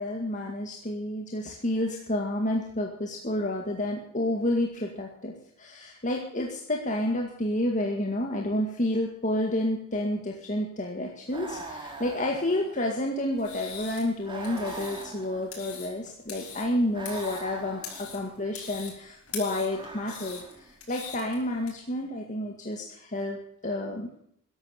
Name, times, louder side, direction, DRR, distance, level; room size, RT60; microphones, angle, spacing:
voice 1, 0.0-5.3 5.6-24.1, left 1 dB, 35° left, 0 dB, 2.0 m, -30 dB
sound 1, 11.3-13.1 14.2-15.8 16.9-18.3 19.6-20.7, right 2 dB, 20° right, 3.0 m, -42 dB
sound 2, 13.3-21.7, left 6 dB, 70° left, 5.6 m, -43 dB
14.5 x 11.5 x 6.6 m, 0.67 s
head